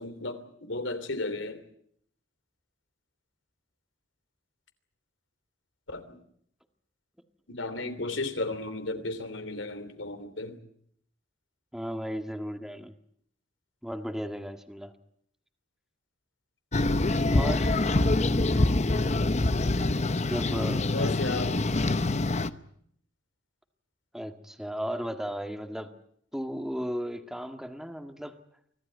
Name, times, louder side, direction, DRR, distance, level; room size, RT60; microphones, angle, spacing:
voice 1, 0.0-1.6 5.9-6.2 7.5-10.6 20.9-21.7, left 2 dB, 80° left, 10 dB, 3.1 m, -34 dB
voice 2, 11.7-12.9 13.8-14.9 17.3-17.9 20.2-21.1 24.1-25.9 26.3-28.4, equal, 5° right, 7 dB, 1.7 m, -35 dB
sound 1, 16.7-22.5, left 2 dB, 35° left, 0.9 m, -25 dB
25.0 x 16.5 x 9.4 m, 0.68 s
head